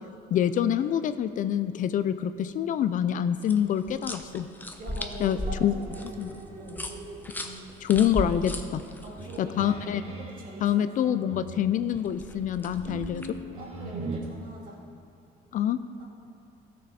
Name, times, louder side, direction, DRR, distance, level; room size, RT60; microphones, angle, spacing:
voice 1, 0.3-4.5 5.2-5.8 6.2-6.3 7.8-8.8 9.4-10.0 10.6-13.3 15.5-15.8, left 9 dB, 50° left, 12 dB, 0.4 m, -26 dB
sound 1, 3.4-9.4 11.9-13.4, left 1 dB, 10° left, 0.7 m, -37 dB
voice 2, 4.8-6.9 9.0-11.5 13.5-14.8, right 1 dB, 55° right, -1 dB, 2.0 m, -43 dB
sound 2, 5.9-10.6 11.3-14.2, right 2 dB, 35° right, 1.5 m, -41 dB
14.0 x 6.4 x 4.2 m, 2.7 s
cardioid pair, 110°, 17 cm